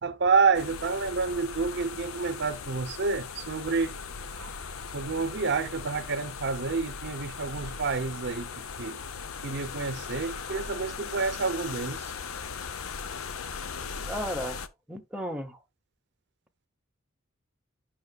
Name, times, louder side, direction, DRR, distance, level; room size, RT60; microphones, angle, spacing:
voice 1, 0.0-3.9 4.4-4.5 4.9-8.5 8.8-9.0 9.4-12.1, right 4 dB, 55° right, 0.7 m, -28 dB
sound 1, 0.5-14.7, left 5 dB, 80° left, 0.7 m, -38 dB
voice 2, 14.0-15.6, equal, 5° right, 0.9 m, -35 dB
9.3 x 5.9 x 2.3 m
head